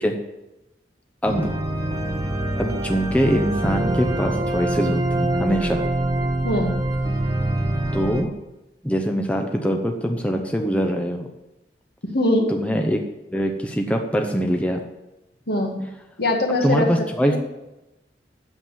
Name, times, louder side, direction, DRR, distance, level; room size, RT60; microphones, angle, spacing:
voice 1, 1.2-1.5 2.6-5.8 7.9-8.3 8.8-11.2 12.5-13.0 13.3-14.8 16.6-17.4, equal, 10° left, 3 dB, 0.8 m, -23 dB
sound 1, 1.3-8.2, right 1 dB, 20° right, 1.0 m, -24 dB
voice 2, 6.4-6.8 12.1-12.5 15.5-15.8 16.2-17.4, left 1 dB, 60° left, 2 dB, 1.9 m, -22 dB
8.9 x 7.3 x 7.4 m, 0.97 s
head